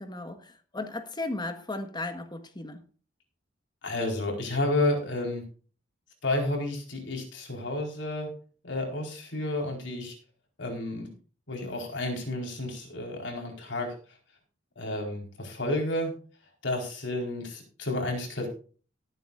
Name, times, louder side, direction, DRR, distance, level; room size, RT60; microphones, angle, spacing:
voice 1, 0.0-2.8, left 2 dB, 25° left, 1.5 m, -36 dB
voice 2, 3.8-5.4 6.2-8.3 8.6-10.1 10.6-11.1 11.5-14.0 14.8-16.1 16.6-18.5, left 1 dB, 70° left, 4.4 m, -31 dB
19.0 x 9.1 x 2.5 m
head